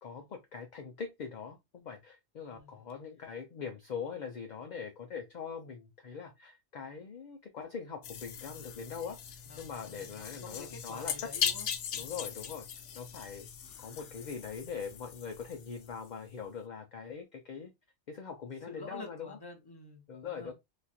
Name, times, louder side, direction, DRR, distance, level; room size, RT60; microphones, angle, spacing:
voice 1, 0.0-11.1 11.9-12.7 12.9-13.5 13.8-17.7 18.1-19.4 20.1-20.5, left 6 dB, 50° left, 0.6 m, -42 dB
sound 1, 8.0-16.1, left 8 dB, 80° left, 1.0 m, -39 dB
voice 2, 9.5-11.7 11.9-12.1 18.7-20.5, left 3 dB, 20° left, 0.9 m, -49 dB
3.1 x 2.4 x 4.1 m
omnidirectional pair, 1.2 m